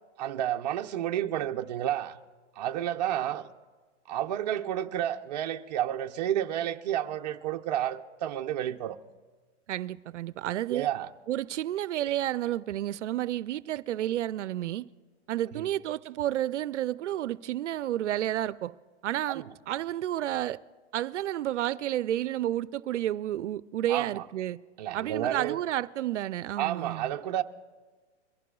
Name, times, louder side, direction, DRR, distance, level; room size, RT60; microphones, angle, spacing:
voice 1, 0.2-2.2 2.6-3.5 4.1-9.0 10.7-11.1 15.5-15.7 19.3-19.5 23.9-24.2 24.8-25.6 26.6-27.4, right 11 dB, 35° right, 0.6 m, -31 dB
voice 2, 9.7-10.9 11.3-14.9 15.3-18.7 19.0-20.6 20.9-24.6 24.9-27.1, right 13 dB, 80° right, 0.5 m, -31 dB
23.0 x 16.0 x 2.3 m
hypercardioid pair, 160°, 35 cm